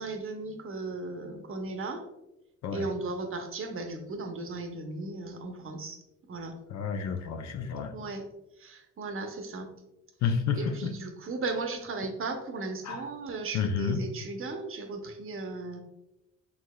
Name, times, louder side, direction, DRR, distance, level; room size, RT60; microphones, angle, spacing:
voice 1, 0.0-2.0 2.7-6.0 6.3-6.6 7.9-8.2 8.6-9.7 10.2-15.8, right 3 dB, 45° right, 5 dB, 0.7 m, -36 dB
voice 2, 6.7-7.9 10.2-10.9 12.9-13.0 13.5-14.0, left 6 dB, 65° left, 7 dB, 0.6 m, -30 dB
4.7 x 3.8 x 2.2 m, 0.92 s
cardioid pair, 90°, 30 cm